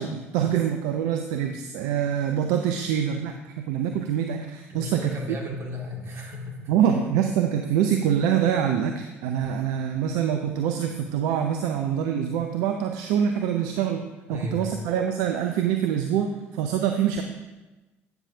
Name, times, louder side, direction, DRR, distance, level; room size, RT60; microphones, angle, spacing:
voice 1, 0.0-5.1 6.7-14.0 14.3-17.2, right 9 dB, 60° right, 5 dB, 0.4 m, -25 dB
voice 2, 4.7-6.6 14.3-14.8, left 1 dB, 40° right, 0 dB, 1.8 m, -35 dB
8.7 x 6.8 x 2.7 m, 1.1 s
figure-of-eight pair, 55°, 7 cm